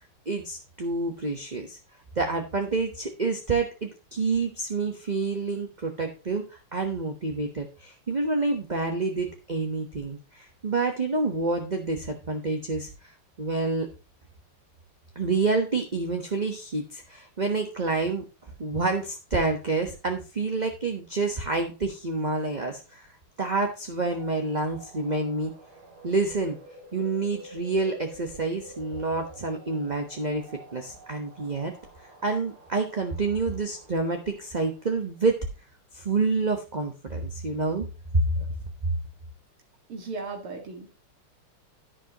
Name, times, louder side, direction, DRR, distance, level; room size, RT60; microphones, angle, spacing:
voice 1, 0.3-1.8 2.1-6.4 6.7-13.9 15.1-18.2 18.6-23.1 23.4-25.5 26.0-26.6 26.9-30.5 30.7-31.7 32.2-35.5 35.9-37.9 38.1-38.5, right 3 dB, 30° right, 3 dB, 0.9 m, -28 dB
sound 1, 24.1-35.4, right 1 dB, 50° right, 2.8 m, -49 dB
voice 2, 39.9-40.9, right 4 dB, 85° right, 1 dB, 3.1 m, -36 dB
11.0 x 10.5 x 3.0 m, 0.31 s
omnidirectional pair, 2.4 m